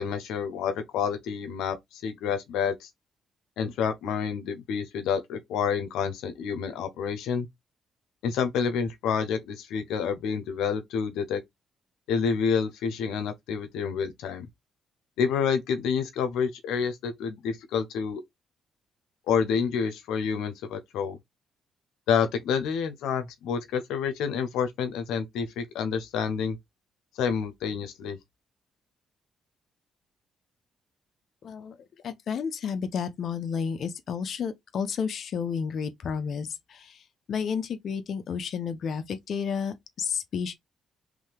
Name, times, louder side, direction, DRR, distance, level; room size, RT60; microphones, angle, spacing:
voice 1, 0.0-2.9 3.6-7.5 8.2-11.4 12.1-14.5 15.2-18.2 19.3-21.2 22.1-26.6 27.1-28.2, left 6 dB, 90° left, 0.8 m, -28 dB
voice 2, 31.4-31.7 32.0-37.0 37.3-40.5, left 6 dB, 60° left, 0.6 m, -31 dB
3.7 x 3.2 x 3.3 m
cardioid pair, 90°, 0 cm